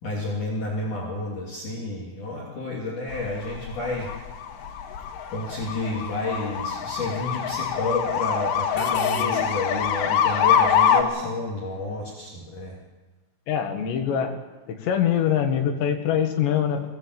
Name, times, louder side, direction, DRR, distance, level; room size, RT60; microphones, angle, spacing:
voice 1, 0.0-4.1 5.3-12.8, left 2 dB, 45° left, -3 dB, 4.0 m, -30 dB
sound 1, 3.1-11.0, left 8 dB, 85° left, 4.0 m, -24 dB
voice 2, 13.5-14.4 14.7-16.9, left 9 dB, 70° left, 4 dB, 4.0 m, -24 dB
22.0 x 18.0 x 8.1 m, 1.2 s
omnidirectional pair, 5.4 m